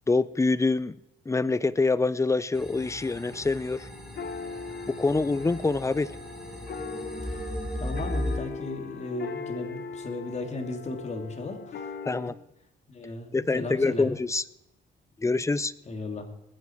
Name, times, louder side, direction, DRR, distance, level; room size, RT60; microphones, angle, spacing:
voice 1, 0.1-0.9 1.3-3.9 4.9-6.2 12.0-12.3 13.3-14.4 15.2-15.7, left 3 dB, 15° left, 17 dB, 0.6 m, -25 dB
sound 1, 2.5-8.4, equal, ahead, 4.0 m, -36 dB
sound 2, 2.8-12.3, left 4 dB, 55° left, 1.4 m, -40 dB
voice 2, 7.7-11.9 12.9-14.1 15.9-16.3, left 2 dB, 35° left, 4 dB, 2.9 m, -36 dB
20.0 x 9.2 x 4.6 m, 0.86 s
cardioid pair, 90°, 20 cm